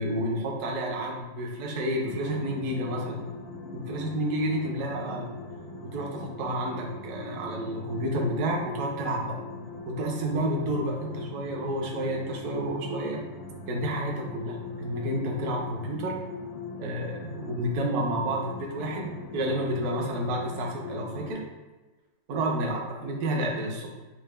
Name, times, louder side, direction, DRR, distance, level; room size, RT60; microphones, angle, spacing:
voice 1, 0.0-3.2 3.7-5.3 5.8-9.4 9.9-13.2 13.7-16.2 16.8-21.4 22.3-23.9, right 1 dB, 65° right, -1 dB, 0.8 m, -30 dB
sound 1, 2.1-21.3, left 3 dB, 65° left, 0.8 m, -41 dB
4.4 x 2.1 x 3.2 m, 1.2 s
omnidirectional pair, 2.1 m